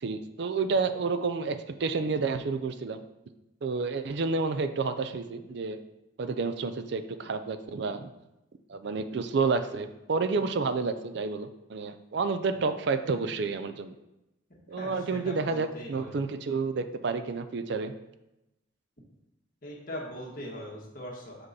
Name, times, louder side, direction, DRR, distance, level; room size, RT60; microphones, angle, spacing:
voice 1, 0.0-3.0 3.6-5.8 6.2-8.1 8.7-14.0 14.7-17.9, right 4 dB, 60° right, 10 dB, 0.4 m, -30 dB
voice 2, 14.8-16.1 19.6-21.5, equal, 45° left, -2 dB, 1.6 m, -40 dB
6.0 x 5.2 x 4.1 m, 0.92 s
head